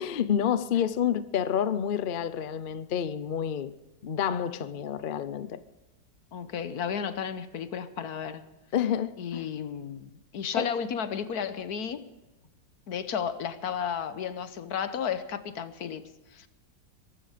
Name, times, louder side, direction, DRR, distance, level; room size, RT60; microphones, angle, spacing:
voice 1, 0.0-3.7 4.0-5.6 8.7-9.4 10.5-10.7, left 9 dB, 80° left, 0.4 m, -29 dB
voice 2, 6.3-8.5 9.2-12.1 12.9-16.0 16.3-16.5, left 7 dB, 60° left, 1.4 m, -33 dB
23.0 x 12.5 x 5.1 m
omnidirectional pair, 2.0 m